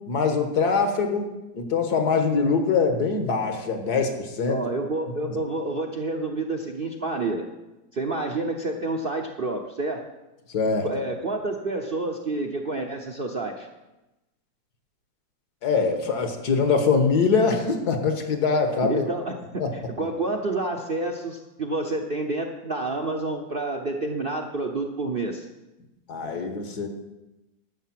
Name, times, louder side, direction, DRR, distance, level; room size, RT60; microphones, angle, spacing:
voice 1, 0.1-4.6 5.3-5.4 10.5-10.9 15.6-19.0 19.6-19.7 26.1-26.9, left 5 dB, 65° left, 5 dB, 1.8 m, -23 dB
voice 2, 4.5-7.5 7.9-10.0 10.8-13.7 18.8-25.5, right 2 dB, 45° right, 3 dB, 0.8 m, -29 dB
11.5 x 6.8 x 7.5 m, 1.0 s
omnidirectional pair, 1.9 m